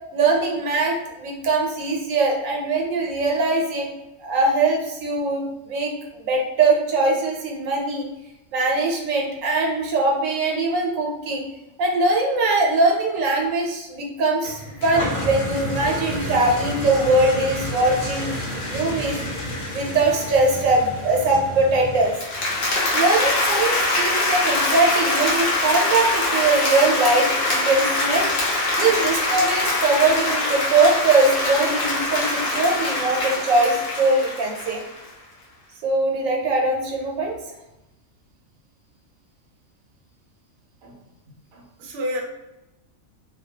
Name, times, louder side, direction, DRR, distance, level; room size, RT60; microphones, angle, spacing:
voice 1, 0.1-3.9 4.2-5.9 6.2-8.1 8.5-11.4 11.8-19.2 19.7-22.1 22.9-28.3 28.7-34.8 35.8-37.4, right 2 dB, 85° right, 0 dB, 1.0 m, -21 dB
sound 1, 14.4-22.2, equal, 90° left, 1.0 m, -34 dB
sound 2, 14.9-22.1, equal, 20° right, 0.7 m, -32 dB
Applause, 22.0-35.1, left 2 dB, 55° left, 0.8 m, -23 dB
voice 2, 40.8-42.2, equal, 60° right, 0 dB, 0.7 m, -32 dB
2.3 x 2.2 x 2.7 m, 0.94 s
omnidirectional pair, 1.4 m